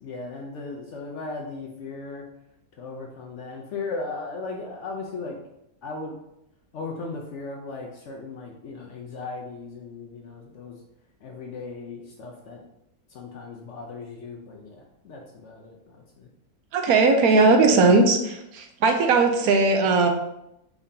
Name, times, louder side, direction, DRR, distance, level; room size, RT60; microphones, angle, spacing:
voice 1, 0.0-2.2 2.8-5.4 5.8-6.1 6.7-10.8 11.2-12.6 13.1-16.3, left 3 dB, 65° left, 0 dB, 0.8 m, -37 dB
voice 2, 16.7-20.1, right 3 dB, 75° right, 4 dB, 1.0 m, -18 dB
4.6 x 3.6 x 2.7 m, 0.84 s
omnidirectional pair, 1.6 m